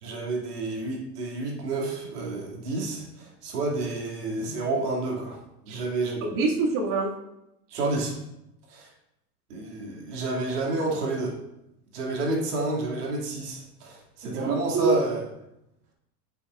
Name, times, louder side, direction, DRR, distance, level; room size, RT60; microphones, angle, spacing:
voice 1, 0.0-5.4 5.7-6.4 7.7-8.2 8.7-8.9 9.5-11.3 11.9-15.2, right 2 dB, 70° right, -3 dB, 2.5 m, -30 dB
voice 2, 6.2-7.2 14.2-15.0, right 4 dB, 40° right, -1 dB, 2.1 m, -26 dB
8.7 x 7.0 x 2.5 m, 0.87 s
hypercardioid pair, 90°, 48 cm